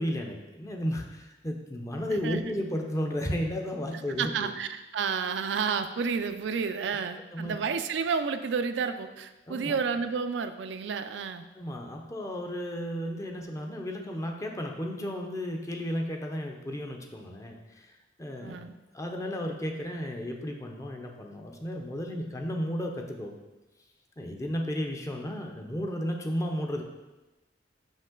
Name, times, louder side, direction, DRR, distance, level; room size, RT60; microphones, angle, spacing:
voice 1, 0.0-4.3 7.3-7.6 9.5-9.8 11.5-17.9 18.2-18.6 18.9-23.4 24.2-26.8, equal, 20° left, 2 dB, 0.6 m, -33 dB
voice 2, 4.2-11.5 18.4-18.8, right 5 dB, 75° right, 9 dB, 0.4 m, -30 dB
6.0 x 5.3 x 3.8 m, 1.1 s
head